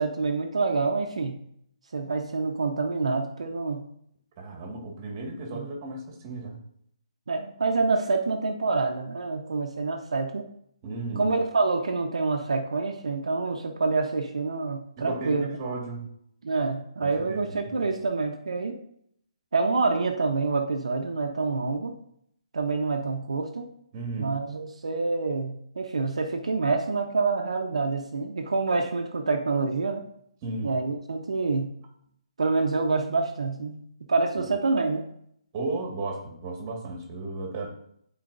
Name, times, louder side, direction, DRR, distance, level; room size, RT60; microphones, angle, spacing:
voice 1, 0.0-1.3 1.9-3.9 5.5-5.7 7.3-10.5 11.2-15.5 16.4-18.8 19.5-21.9 22.5-23.7 24.2-30.0 30.6-31.7 32.4-35.1, right 3 dB, 80° right, 2 dB, 1.0 m, -27 dB
voice 2, 4.4-6.6 10.8-11.3 15.0-16.0 17.0-17.9 23.9-24.4 30.4-30.7 35.5-37.7, right 2 dB, 30° right, 1 dB, 1.8 m, -34 dB
12.0 x 4.4 x 2.6 m, 0.70 s
hypercardioid pair, 150°, 3 cm